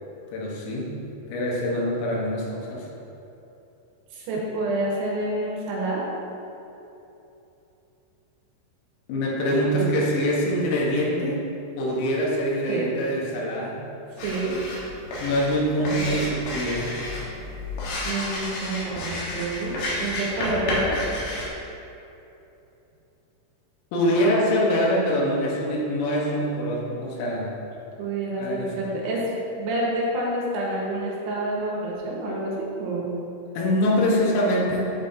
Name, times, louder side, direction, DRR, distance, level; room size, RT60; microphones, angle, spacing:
voice 1, 0.3-1.0 1.3-2.9 9.1-11.4 11.8-13.8 15.2-17.0 23.9-27.5 28.4-28.8 33.6-34.8, equal, 90° left, -3 dB, 4.0 m, -24 dB
voice 2, 4.1-6.0 12.7-12.9 14.2-14.5 18.1-21.0 28.0-29.3 29.6-33.1, right 2 dB, 85° right, -4 dB, 4.1 m, -28 dB
sound 1, 14.2-21.5, left 1 dB, 70° left, 3.4 m, -31 dB
12.0 x 5.3 x 2.8 m, 2.9 s
omnidirectional pair, 5.9 m